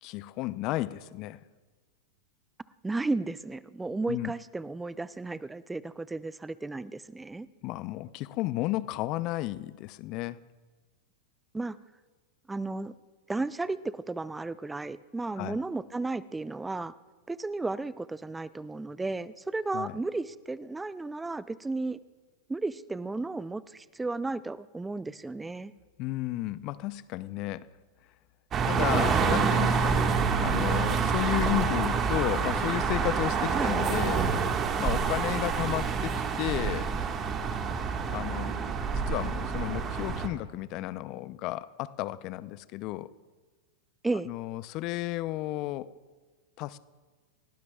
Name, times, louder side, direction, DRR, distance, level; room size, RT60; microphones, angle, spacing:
voice 1, 0.0-1.4 4.1-4.3 7.6-10.4 15.4-15.6 19.7-19.9 26.0-27.7 28.6-30.1 30.4-34.3 34.8-36.9 38.1-38.5 38.9-43.1 44.2-45.9 46.6-46.8, left 16 dB, 45° left, 16 dB, 0.6 m, -33 dB
voice 2, 2.8-7.5 11.5-11.8 12.5-12.9 13.3-16.9 17.3-22.0 22.5-25.7 33.5-33.7 44.0-44.3, right 3 dB, 10° right, 16 dB, 0.5 m, -34 dB
sound 1, 28.5-40.3, right 5 dB, 30° right, 1.7 m, -27 dB
29.0 x 18.0 x 2.4 m, 1.3 s
hypercardioid pair, 100°, 0 cm